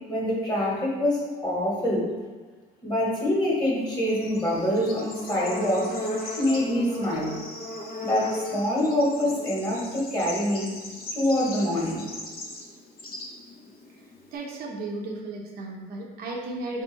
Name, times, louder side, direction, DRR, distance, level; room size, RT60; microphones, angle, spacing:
voice 1, 0.1-2.1 2.8-5.9 6.4-7.4 8.0-10.7 11.1-12.1, left 1 dB, 25° left, -5 dB, 1.5 m, -25 dB
Bird / Insect, 3.8-14.4, left 1 dB, 60° left, 0.9 m, -37 dB
voice 2, 14.3-16.8, right 2 dB, 70° right, -1 dB, 0.7 m, -34 dB
3.6 x 2.7 x 3.9 m, 1.4 s
cardioid pair, 110°, 17 cm